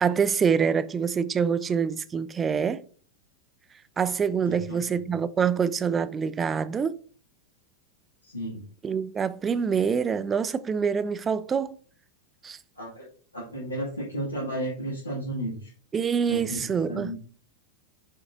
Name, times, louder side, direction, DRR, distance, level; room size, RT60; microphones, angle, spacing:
voice 1, 0.0-2.8 4.0-7.0 8.8-11.8 12.4-12.6 15.9-17.1, right 6 dB, 20° right, 0.4 m, -25 dB
voice 2, 4.5-5.1 8.2-8.6 12.8-15.7 16.3-17.2, right 1 dB, 80° left, 1.9 m, -34 dB
7.9 x 4.7 x 2.6 m
figure-of-eight pair, 90°, 0 cm